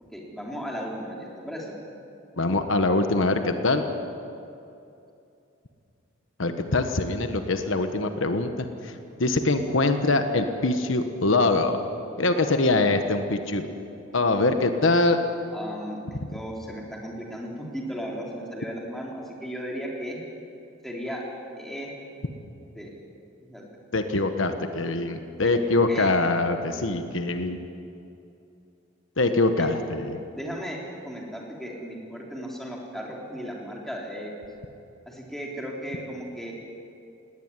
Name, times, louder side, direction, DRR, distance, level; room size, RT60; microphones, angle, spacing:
voice 1, 0.1-1.7 15.5-20.2 20.8-21.2 21.6-21.9 22.8-22.9 23.4-23.6 25.4-26.1 29.6-29.7 30.3-34.4 35.1-36.5, equal, ahead, -2 dB, 3.6 m, -36 dB
voice 2, 2.4-3.9 6.4-8.9 9.2-11.8 12.2-13.7 14.1-15.2 23.9-27.6 29.2-30.2, left 2 dB, 70° left, 7 dB, 1.3 m, -23 dB
18.5 x 18.5 x 9.7 m, 2.7 s
head